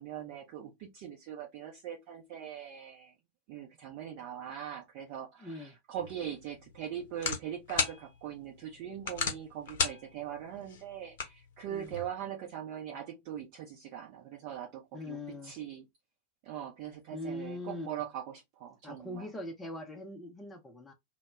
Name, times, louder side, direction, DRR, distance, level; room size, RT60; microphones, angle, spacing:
voice 1, 0.0-3.1 3.5-15.2 15.4-15.9 16.4-18.3 18.6-19.3, right 9 dB, 45° right, 0.6 m, -41 dB
voice 2, 5.4-5.7 11.7-11.9 14.9-15.5 17.1-17.9 18.8-20.9, left 1 dB, 10° left, 0.5 m, -41 dB
sound 1, 6.0-12.1, left 5 dB, 55° left, 0.7 m, -38 dB
2.1 x 2.1 x 3.3 m
figure-of-eight pair, 90°, 0 cm